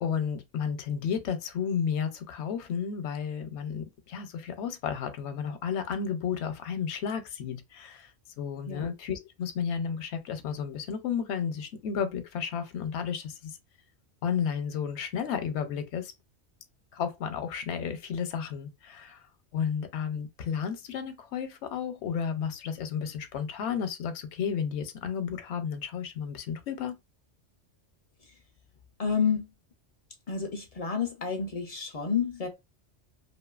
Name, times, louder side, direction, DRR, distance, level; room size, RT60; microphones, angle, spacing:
voice 1, 0.0-8.1 8.4-13.5 14.2-16.1 16.9-19.2 19.5-27.0, left 7 dB, 70° left, 0.9 m, -32 dB
voice 2, 29.0-29.5 30.3-32.5, left 6 dB, 50° left, 0.4 m, -29 dB
2.6 x 2.4 x 2.3 m
omnidirectional pair, 1.2 m